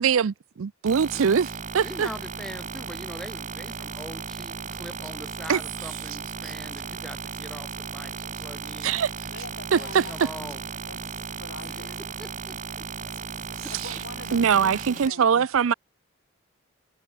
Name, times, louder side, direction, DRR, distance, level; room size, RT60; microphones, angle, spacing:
voice 1, 0.0-2.1 5.5-5.6 6.4-6.5 8.8-9.1 9.7-10.0 13.8-13.9 14.3-15.7, right 7 dB, 70° right, 0.4 m, -22 dB
sound 1, 0.9-15.1, right 5 dB, 35° right, 1.9 m, -36 dB
voice 2, 1.8-9.0 9.8-10.6 11.6-12.9 13.6-13.7, equal, ahead, 1.0 m, -42 dB
voice 3, 9.3-12.0 13.7-15.5, left 3 dB, 60° left, 2.5 m, -44 dB
head